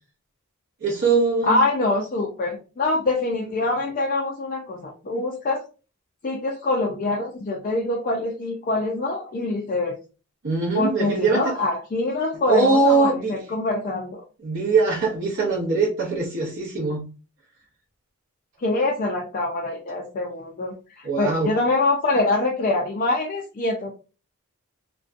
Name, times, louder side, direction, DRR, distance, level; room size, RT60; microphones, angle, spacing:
voice 1, 0.8-1.6 10.4-11.5 12.5-13.4 14.4-17.0 21.0-21.5, right 3 dB, 55° right, -4 dB, 0.6 m, -21 dB
voice 2, 1.4-5.6 6.2-10.0 10.7-14.2 18.6-23.9, left 2 dB, 35° left, 0 dB, 0.3 m, -24 dB
2.5 x 2.1 x 2.4 m, 0.34 s
head